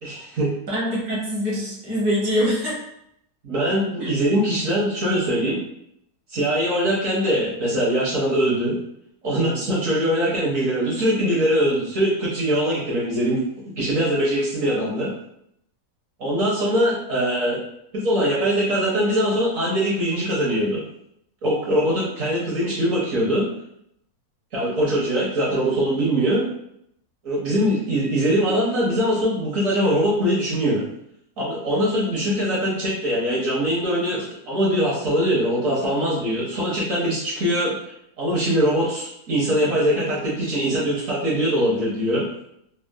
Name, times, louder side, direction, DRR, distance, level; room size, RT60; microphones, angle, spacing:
voice 1, 0.0-0.5 3.4-5.6 6.3-8.8 9.2-13.4 13.8-15.1 16.2-17.6 17.9-20.8 21.4-23.5 24.5-26.4 27.2-30.8 31.4-37.7 38.2-42.3, equal, 60° right, -6 dB, 1.2 m, -22 dB
voice 2, 0.7-2.8 4.0-4.1, equal, 20° right, -7 dB, 0.8 m, -24 dB
3.5 x 2.5 x 2.2 m, 0.75 s
omnidirectional pair, 1.7 m